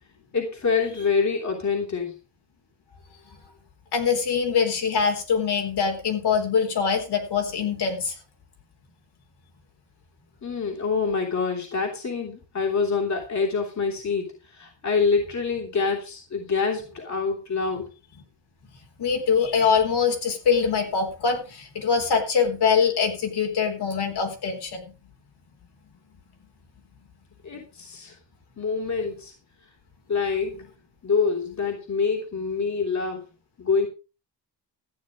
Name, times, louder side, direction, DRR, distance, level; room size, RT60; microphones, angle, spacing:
voice 1, 0.3-2.1 10.4-17.9 27.4-28.1 28.6-29.3 30.1-30.6 31.0-33.2 33.6-33.9, left 5 dB, 40° left, 1 dB, 3.2 m, -26 dB
voice 2, 3.9-8.2 19.0-24.9, left 6 dB, 65° left, 3 dB, 4.2 m, -23 dB
14.0 x 9.7 x 5.1 m, 0.32 s
wide cardioid pair, 150°, 43 cm